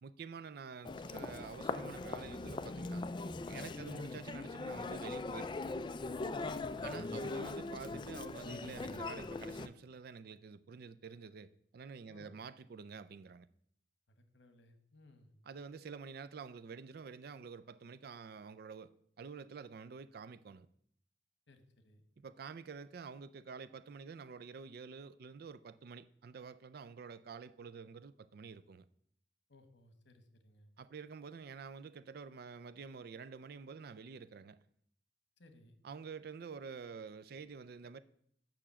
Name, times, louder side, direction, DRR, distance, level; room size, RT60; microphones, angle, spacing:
voice 1, 0.0-3.1 3.4-5.7 6.8-13.5 15.5-18.9 19.2-20.7 22.2-28.9 30.8-34.6 35.8-38.0, right 5 dB, 55° right, 0.4 m, -48 dB
Human voice, 0.8-9.7, left 3 dB, 25° left, 0.4 m, -41 dB
voice 2, 6.4-7.1 12.1-12.3 14.1-15.3 21.5-22.0 29.5-30.7 35.4-35.8, left 1 dB, 70° left, 1.2 m, -61 dB
6.9 x 6.0 x 7.3 m
head